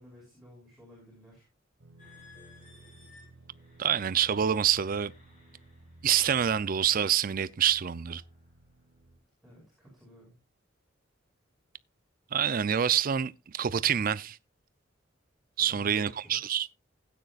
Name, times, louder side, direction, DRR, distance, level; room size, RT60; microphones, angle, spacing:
voice 1, 0.0-1.5 9.4-10.3 15.6-16.6, left 1 dB, ahead, 5.4 m, -53 dB
sound 1, 1.8-9.2, right 2 dB, 75° right, 1.4 m, -55 dB
sound 2, 2.0-6.5 7.1-7.4 8.0-8.3, left 3 dB, 40° left, 6.3 m, -58 dB
voice 2, 3.8-5.1 6.0-8.2 12.3-14.4 15.6-16.7, right 9 dB, 45° right, 0.5 m, -26 dB
16.5 x 9.2 x 2.4 m
head